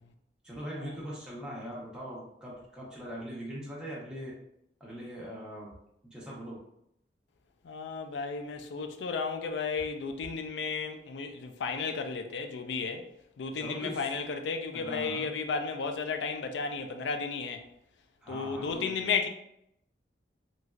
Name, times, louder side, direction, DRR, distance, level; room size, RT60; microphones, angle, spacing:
voice 1, 0.4-4.3 4.8-5.7 6.0-6.6 13.5-14.1 14.7-15.3 18.2-19.0, equal, 5° right, 0.8 m, -41 dB
voice 2, 7.6-13.1 13.4-17.6 18.3-19.3, left 5 dB, 85° left, 0.4 m, -33 dB
3.1 x 2.6 x 2.3 m
head